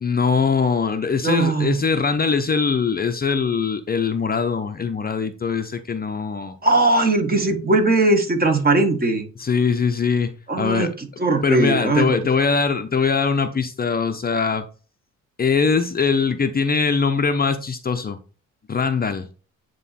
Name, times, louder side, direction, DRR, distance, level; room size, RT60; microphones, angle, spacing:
voice 1, 0.0-6.6 9.4-10.9 11.4-14.7 15.4-18.2 18.7-19.3, left 5 dB, 30° left, 0.7 m, -22 dB
voice 2, 1.2-1.8 6.6-9.2 10.5-12.2, right 2 dB, 30° right, 1.7 m, -19 dB
9.2 x 3.1 x 4.3 m
cardioid pair, 90°, 30 cm